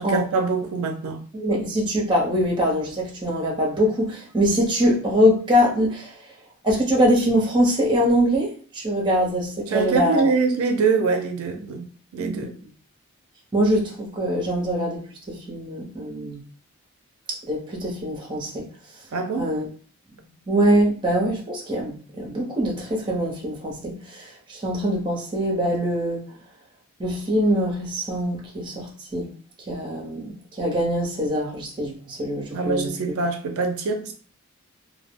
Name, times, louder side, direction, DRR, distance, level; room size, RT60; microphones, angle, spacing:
voice 1, 0.0-1.2 9.7-12.5 19.1-19.5 32.5-34.1, right 4 dB, 75° right, 0.4 m, -24 dB
voice 2, 1.3-6.1 6.6-10.2 12.2-12.5 13.5-16.4 17.3-18.7 19.4-19.7 20.5-26.2 27.0-29.3 29.7-32.9, equal, 20° right, 0.6 m, -23 dB
2.2 x 2.0 x 3.4 m
head